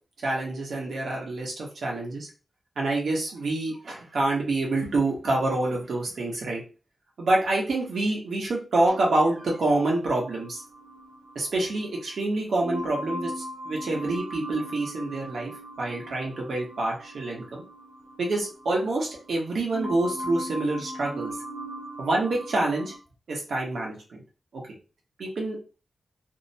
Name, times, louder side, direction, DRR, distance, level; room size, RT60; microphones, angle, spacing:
voice 1, 0.2-2.3 2.8-6.6 7.2-10.6 11.3-15.5 15.8-17.6 18.2-21.3 22.0-22.9 23.3-24.2 24.5-24.6 25.2-25.7, right 2 dB, 75° right, -2 dB, 0.9 m, -27 dB
sound 1, 8.9-12.1 12.6-19.4 19.7-23.0, equal, 35° right, 0.7 m, -39 dB
2.7 x 2.1 x 2.7 m, 0.34 s
wide cardioid pair, 165°, 0 cm